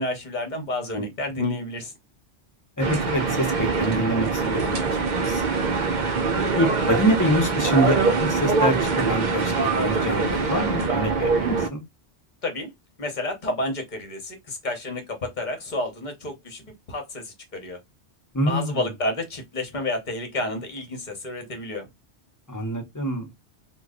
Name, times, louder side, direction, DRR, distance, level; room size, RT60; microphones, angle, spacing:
voice 1, 0.0-1.9 12.4-12.7 13.0-17.8 18.5-21.9, left 2 dB, 45° left, 1.0 m, -30 dB
voice 2, 2.8-5.6 6.3-11.8 18.3-18.9 22.5-23.3, right 1 dB, 20° left, 0.8 m, -26 dB
sound 1, 2.8-11.7, right 4 dB, 50° right, 0.6 m, -23 dB
3.0 x 2.3 x 3.6 m
omnidirectional pair, 1.2 m